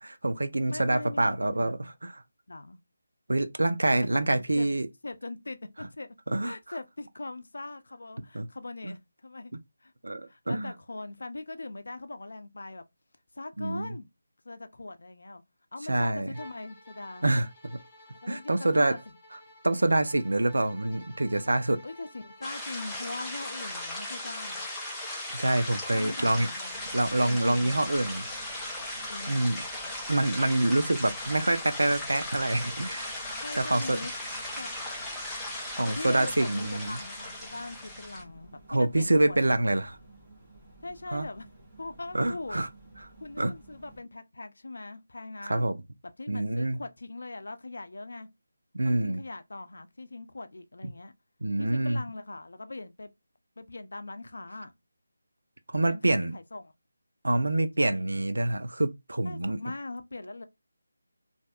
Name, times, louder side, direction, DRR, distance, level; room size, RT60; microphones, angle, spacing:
voice 1, 0.0-2.2 3.3-4.9 6.3-6.8 8.3-8.5 8.8-8.9 10.0-10.7 13.6-13.9 15.9-16.3 17.2-17.8 18.3-19.0 19.6-21.8 25.3-26.5 26.9-28.2 29.3-29.6 30.1-34.0 35.8-37.0 38.7-40.0 41.1-41.3 42.1-42.7 43.4-43.5 45.4-45.8 46.3-46.8 48.7-49.2 51.4-52.0 55.7-56.3 57.2-59.6, right 2 dB, 70° right, 0.5 m, -26 dB
voice 2, 0.7-1.9 2.5-2.8 3.9-4.8 5.0-6.1 6.4-9.5 9.8-9.9 10.3-12.8 13.3-14.1 14.4-15.4 15.7-17.3 18.2-19.0 21.8-24.7 25.9-27.9 29.1-29.4 33.4-34.1 34.6-34.7 35.8-39.4 40.8-41.5 41.8-42.6 43.2-45.7 46.0-48.3 48.8-51.1 51.6-53.1 53.6-54.7 55.8-56.6 57.8-58.1 59.2-60.4, left 2 dB, 60° left, 0.5 m, -41 dB
Bowed string instrument, 16.3-22.6, left 1 dB, 20° left, 1.8 m, -53 dB
sound 1, 22.4-38.2, left 1 dB, 5° left, 0.6 m, -37 dB
sound 2, 26.7-44.0, right 2 dB, 15° right, 1.6 m, -53 dB
3.3 x 2.6 x 2.4 m
figure-of-eight pair, 160°, 0 cm